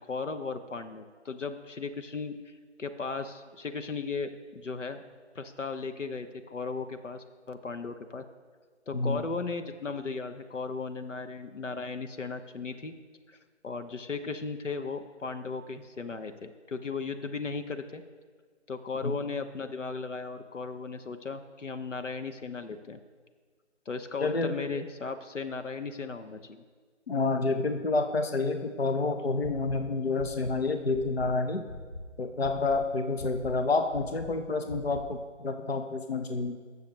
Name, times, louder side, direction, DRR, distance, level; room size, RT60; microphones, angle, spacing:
voice 1, 0.1-2.5 2.8-5.0 5.3-8.2 8.9-12.9 13.3-13.4 13.6-18.0 18.7-23.0 23.9-26.6, left 4 dB, 85° left, 8 dB, 0.9 m, -36 dB
voice 2, 8.9-9.3 19.0-19.1 24.2-24.6 27.1-31.7 32.2-36.6, left 3 dB, 55° left, 7 dB, 0.6 m, -29 dB
sound 1, 29.4-29.7 30.1-30.5 30.9-31.2 31.6-32.0 32.4-32.8 33.1-33.5 33.9-34.2 34.6-35.0, left 2 dB, 5° right, 2.7 m, -41 dB
14.0 x 6.6 x 3.2 m, 1.5 s
figure-of-eight pair, 180°, 36 cm